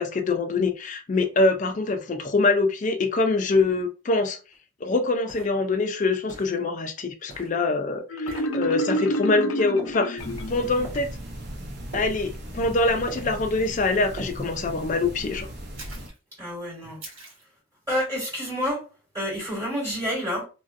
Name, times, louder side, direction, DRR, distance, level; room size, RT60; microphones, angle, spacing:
voice 1, 0.0-4.4 4.8-10.2 10.5-11.1 11.9-15.5, left 3 dB, 40° left, 0.4 m, -24 dB
sound 1, 4.5-4.6 5.3-5.6 6.3-6.6 7.3-7.5 8.3-8.5 9.8-10.0 10.8-11.1 11.9-12.2 13.1-13.3 14.2-14.4 15.8-16.2 17.0-17.4, right 2 dB, 85° right, 1.3 m, -41 dB
Marimba xylophone, 8.1-10.9, equal, 85° left, 0.6 m, -29 dB
sound 2, 10.2-16.1, equal, 55° right, 0.7 m, -37 dB
voice 2, 16.4-17.0 17.9-18.9 19.1-20.5, equal, 15° right, 1.3 m, -28 dB
3.1 x 2.5 x 2.5 m
head